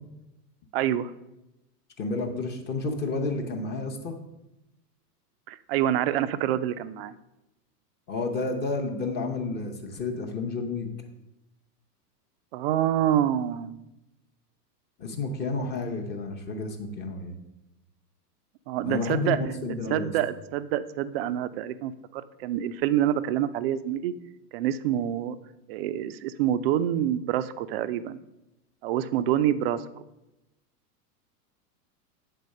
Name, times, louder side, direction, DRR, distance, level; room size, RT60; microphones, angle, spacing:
voice 1, 0.7-1.1 5.5-7.1 12.5-13.9 18.7-19.4 19.9-24.1 24.5-25.4 25.7-28.2 28.8-30.0, right 11 dB, 40° right, 13 dB, 0.4 m, -27 dB
voice 2, 2.0-4.2 8.1-10.9 15.0-17.4 18.8-20.1, left 3 dB, 20° left, 2 dB, 0.7 m, -30 dB
8.4 x 4.0 x 6.4 m, 0.94 s
supercardioid pair, 140°, 47 cm